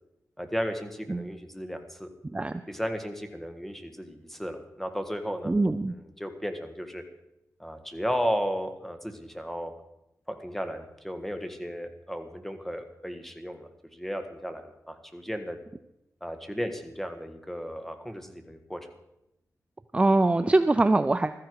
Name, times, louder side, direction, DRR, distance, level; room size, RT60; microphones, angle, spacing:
voice 1, 0.4-2.1 2.7-5.5 5.9-7.0 7.6-9.7 10.3-15.6 16.2-18.9, equal, 5° left, 6 dB, 1.7 m, -34 dB
voice 2, 5.5-5.9 19.9-21.3, right 2 dB, 20° right, 11 dB, 0.5 m, -23 dB
15.5 x 13.5 x 4.7 m, 0.86 s
wide cardioid pair, 100°, 6 cm